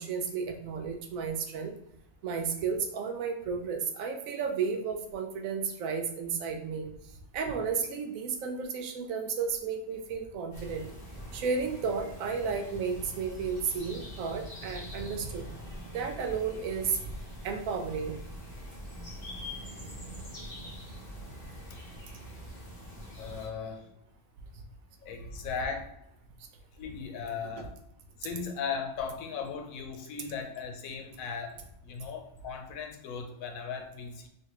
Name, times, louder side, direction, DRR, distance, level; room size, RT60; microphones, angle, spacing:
voice 1, 0.0-1.7 2.2-6.9 7.3-10.8 11.3-15.4 15.9-17.0 17.4-18.2 19.8-20.6 27.6-27.7, right 5 dB, 85° right, 5 dB, 1.0 m, -33 dB
sound 1, 10.5-23.5, equal, 40° left, 1.3 m, -44 dB
voice 2, 23.2-23.9 25.0-25.9 26.8-27.8 28.2-31.5 31.8-34.3, left 6 dB, 85° left, 4 dB, 1.0 m, -37 dB
3.4 x 2.5 x 2.9 m, 0.78 s
omnidirectional pair, 1.4 m